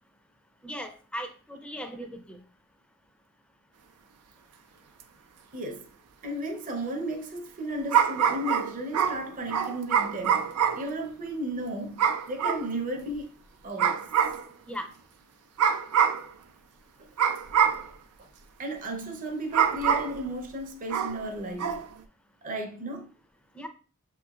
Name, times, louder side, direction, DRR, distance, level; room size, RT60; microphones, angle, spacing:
voice 1, 0.6-2.4 14.7-14.9 23.5-23.7, equal, 5° left, 0.5 m, -38 dB
sound 1, 5.0-5.1 7.9-10.9 12.0-12.7 13.8-14.5 15.6-16.3 17.2-17.9 19.5-20.2 20.9-21.2 21.6-21.9, right 8 dB, 85° right, 0.5 m, -25 dB
voice 2, 5.5-5.9 6.2-13.3 13.6-14.1 17.0-17.1 18.2-18.3 18.6-21.8 22.4-23.1, right 1 dB, 35° right, 0.7 m, -34 dB
6.7 x 3.0 x 2.4 m
head